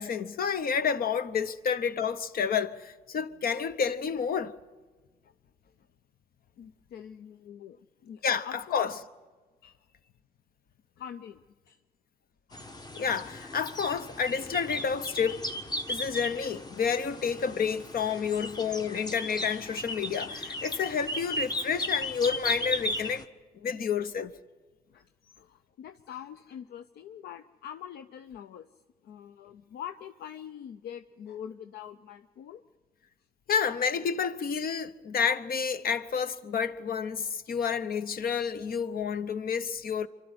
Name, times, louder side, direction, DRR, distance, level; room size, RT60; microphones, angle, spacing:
voice 1, 0.0-4.5 8.2-8.9 12.9-15.6 15.9-23.2 23.6-24.3 33.5-40.1, left 6 dB, 65° left, 0.9 m, -30 dB
voice 2, 6.6-8.9 9.6-9.8 11.0-11.8 12.5-12.6 18.1-18.2 24.9-25.1 25.4-28.7 29.0-32.6, left 9 dB, 80° left, 0.5 m, -44 dB
sound 1, 12.5-23.2, left 1 dB, 25° left, 1.3 m, -36 dB
25.0 x 12.0 x 9.6 m
supercardioid pair, 60°, 17 cm